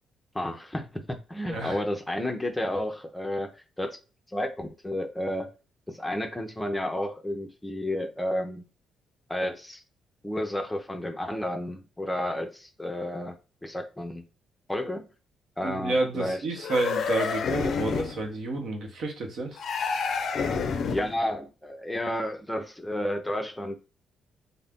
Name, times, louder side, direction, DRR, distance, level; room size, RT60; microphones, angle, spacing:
voice 1, 0.3-4.0 4.3-5.5 5.9-8.6 9.3-9.8 10.2-13.3 13.6-14.2 14.7-15.1 15.6-16.4 20.9-23.7, left 1 dB, 10° left, 5 dB, 0.5 m, -31 dB
voice 2, 1.5-1.8 15.6-19.6, right 2 dB, 65° right, 2 dB, 0.9 m, -30 dB
sound 1, 16.6-18.2 19.6-21.2, left 5 dB, 65° left, 0.4 m, -28 dB
2.5 x 2.0 x 3.5 m, 0.32 s
cardioid pair, 90°, 0 cm